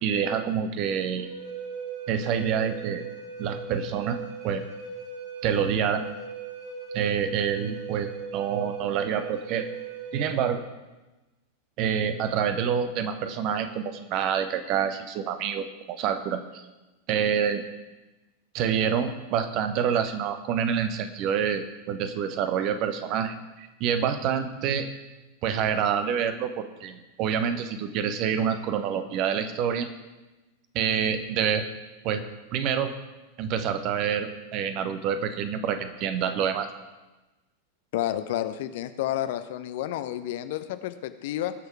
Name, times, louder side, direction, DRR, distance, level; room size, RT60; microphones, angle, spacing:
voice 1, 0.0-1.3 2.1-3.0 3.4-4.6 5.4-6.0 6.9-9.7 10.1-10.6 11.8-16.6 17.1-17.6 18.5-24.9 25.4-29.9 30.7-31.7 32.0-32.2 32.5-32.9 33.4-36.7, right 8 dB, 40° right, 9 dB, 1.2 m, -27 dB
Wind instrument woodwind instrument, 1.2-10.5, right 6 dB, 65° right, 4.0 m, -38 dB
voice 2, 37.9-41.5, left 12 dB, 50° left, 11 dB, 0.8 m, -30 dB
19.5 x 6.7 x 4.8 m, 1.1 s
figure-of-eight pair, 90°, 0 cm